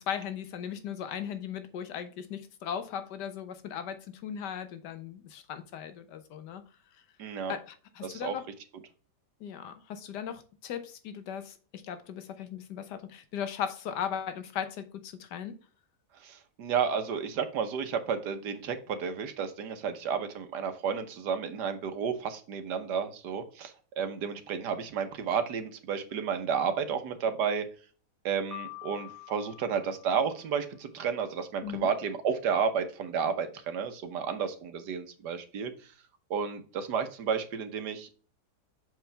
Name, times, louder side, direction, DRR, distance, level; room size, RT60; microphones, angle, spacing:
voice 1, 0.0-6.6 7.5-8.4 9.4-15.5 31.6-31.9, left 8 dB, 85° left, 9 dB, 1.5 m, -37 dB
voice 2, 7.2-7.6 8.0-8.3 16.2-27.7 28.2-35.7 36.3-38.1, right 6 dB, 80° right, 8 dB, 1.5 m, -32 dB
Piano, 28.5-30.7, left 14 dB, 45° left, 1.6 m, -46 dB
6.8 x 4.7 x 3.3 m, 0.38 s
omnidirectional pair, 1.8 m